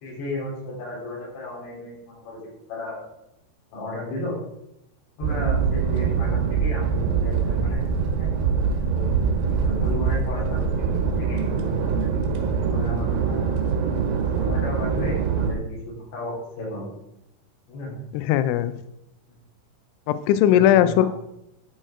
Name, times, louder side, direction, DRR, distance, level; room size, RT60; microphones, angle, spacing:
voice 1, 0.0-2.4 2.7-3.0 3.7-4.4 5.2-8.3 8.9-9.1 9.6-10.9 11.2-13.7 14.4-16.9 17.7-18.0 20.5-21.1, left 1 dB, 60° left, -5 dB, 6.0 m, -34 dB
sound 1, 5.2-15.6, right 6 dB, 80° right, 3.7 m, -23 dB
voice 2, 18.1-18.7 20.1-21.1, left 11 dB, 85° left, 12 dB, 2.7 m, -18 dB
11.0 x 6.3 x 4.5 m, 0.83 s
omnidirectional pair, 6.0 m